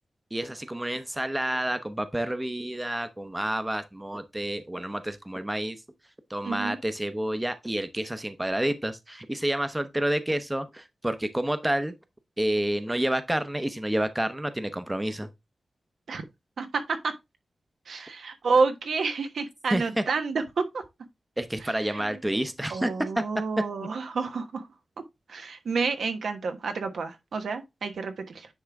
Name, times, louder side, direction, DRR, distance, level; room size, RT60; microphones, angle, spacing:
voice 1, 0.3-5.8 6.3-11.9 12.4-15.3 19.7-20.0 21.4-23.2, right 1 dB, 10° right, 0.7 m, -29 dB
voice 2, 6.4-6.8 16.1-16.2 16.6-17.1 17.9-20.8 21.6-22.2 22.7-24.7 25.3-28.5, right 4 dB, 85° right, 1.1 m, -29 dB
9.8 x 3.6 x 3.5 m
wide cardioid pair, 115°, 0 cm